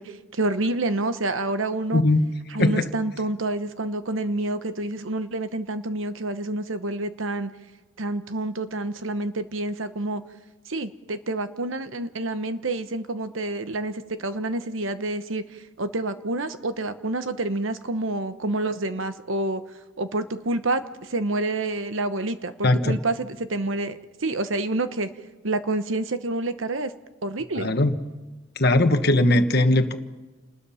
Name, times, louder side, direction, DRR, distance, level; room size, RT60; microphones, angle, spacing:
voice 1, 0.0-2.0 2.5-7.5 8.0-10.2 10.7-19.6 20.0-25.1 25.4-26.9 27.2-27.7, right 2 dB, 75° right, 11 dB, 1.1 m, -28 dB
voice 2, 22.6-22.9 27.6-27.9 28.6-30.0, left 2 dB, 50° left, 8 dB, 1.3 m, -19 dB
29.0 x 20.0 x 5.7 m, 1.2 s
head